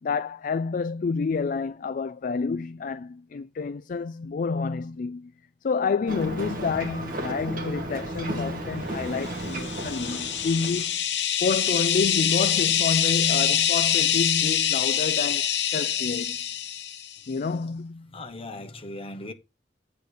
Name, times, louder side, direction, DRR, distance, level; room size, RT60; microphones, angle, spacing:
voice 1, 0.0-5.3 5.6-10.9 11.4-16.4 17.3-18.1, left 4 dB, 50° left, 0.4 m, -29 dB
Ocean, 6.1-11.0, right 1 dB, 55° right, 1.9 m, -34 dB
sound 1, 9.4-17.2, left 10 dB, 75° left, 0.9 m, -25 dB
voice 2, 18.1-19.3, left 2 dB, 35° left, 1.1 m, -38 dB
8.3 x 4.1 x 6.5 m
head